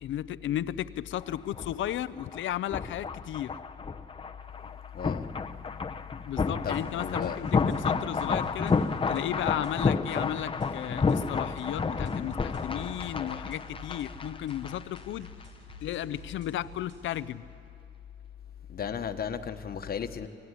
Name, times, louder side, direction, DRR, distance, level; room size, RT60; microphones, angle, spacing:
voice 1, 0.0-3.5 6.3-15.3 15.8-17.5, left 12 dB, 75° left, 16 dB, 0.7 m, -34 dB
sound 1, 1.2-15.0 15.3-15.4, left 4 dB, 25° left, 0.9 m, -31 dB
voice 2, 4.9-5.3 6.6-7.4 18.7-20.3, left 7 dB, 50° left, 9 dB, 1.3 m, -35 dB
sound 2, 6.6-17.3, equal, 65° right, 5.3 m, -50 dB
24.5 x 16.5 x 9.9 m, 2.5 s
cardioid pair, 90°, 20 cm